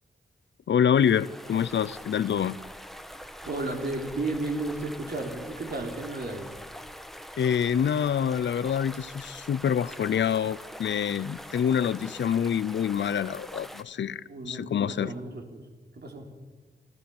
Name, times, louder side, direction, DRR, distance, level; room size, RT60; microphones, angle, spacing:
voice 1, 0.7-2.6 7.4-15.1, left 8 dB, 85° left, 0.6 m, -26 dB
sound 1, 0.9-13.8, equal, ahead, 1.1 m, -44 dB
voice 2, 3.4-6.5 14.3-15.6 15.9-16.3, right 2 dB, 65° right, 3.5 m, -33 dB
27.5 x 13.0 x 7.2 m
wide cardioid pair, 85°, 18 cm